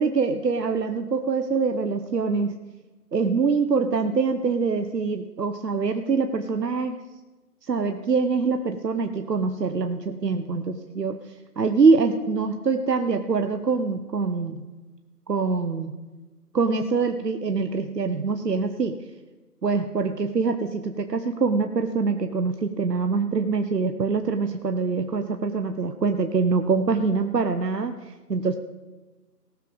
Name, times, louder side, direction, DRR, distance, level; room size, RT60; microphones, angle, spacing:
voice 1, 0.0-2.6 3.1-7.0 7.6-14.7 15.3-15.9 16.5-18.9 19.6-28.6, right 4 dB, 80° right, 7 dB, 1.0 m, -24 dB
18.5 x 7.2 x 5.2 m, 1.2 s
figure-of-eight pair, 170°, 48 cm